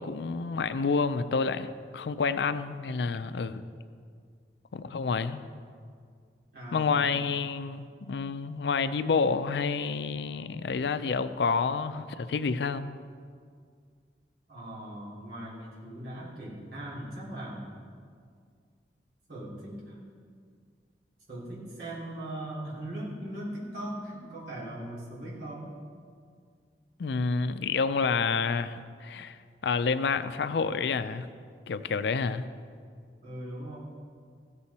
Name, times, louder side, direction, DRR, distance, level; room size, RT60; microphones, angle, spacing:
voice 1, 0.0-3.6 4.7-5.4 6.7-12.9 27.0-29.4 29.6-31.3 31.7-32.4, left 5 dB, 75° left, 12 dB, 0.4 m, -29 dB
voice 2, 6.5-7.2 14.5-17.7 19.3-20.0 21.3-25.7 33.2-33.8, right 1 dB, 65° right, -8 dB, 3.2 m, -39 dB
14.5 x 6.9 x 4.2 m, 2.1 s
head